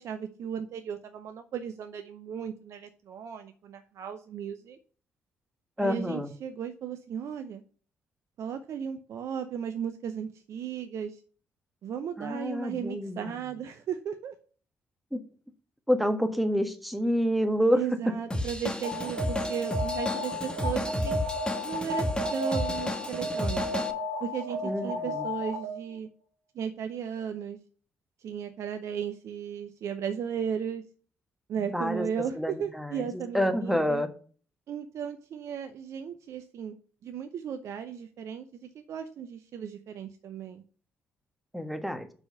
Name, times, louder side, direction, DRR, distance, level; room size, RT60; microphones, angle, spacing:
voice 1, 0.0-4.8 5.8-7.6 8.4-11.2 11.8-14.3 17.7-21.2 21.6-22.0 22.3-23.8 24.2-26.1 26.5-27.6 28.2-30.8 31.5-34.1 34.7-36.8 37.0-40.6, right 8 dB, 60° right, 8 dB, 0.6 m, -35 dB
voice 2, 5.8-6.3 12.2-13.5 15.1-15.2 15.9-17.8 24.6-25.2 31.7-32.1 32.4-33.1 33.3-34.1 41.5-42.1, equal, ahead, 7 dB, 1.5 m, -28 dB
Drum kit / Drum, 18.3-23.9, left 1 dB, 15° left, 1.4 m, -32 dB
Alarm, 18.8-25.9, left 1 dB, 85° right, 1.3 m, -33 dB
6.2 x 5.0 x 6.4 m, 0.42 s
hypercardioid pair, 45°, 6 cm